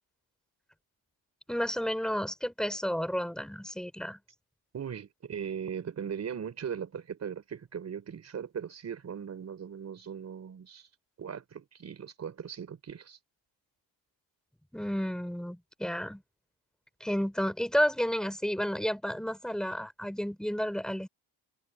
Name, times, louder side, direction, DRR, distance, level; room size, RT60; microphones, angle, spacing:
voice 1, 1.5-4.2 14.7-16.2 17.0-21.1, equal, ahead, 4.8 m, -31 dB
voice 2, 4.7-10.9 11.2-13.2, right 7 dB, 35° right, 5.0 m, -39 dB
cardioid pair, 180°, 45 cm